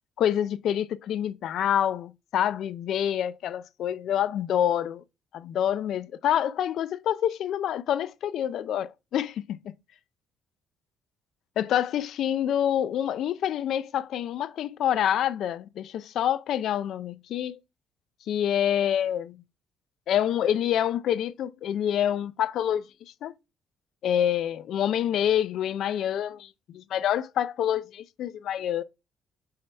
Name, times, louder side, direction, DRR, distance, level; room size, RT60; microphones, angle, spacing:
voice 1, 0.2-5.0 5.3-9.7 11.6-17.6 18.3-19.4 20.1-22.8 23.2-23.3 24.0-28.8, left 10 dB, 60° left, 0.4 m, -27 dB
6.7 x 5.5 x 3.3 m
cardioid pair, 170°, 0 cm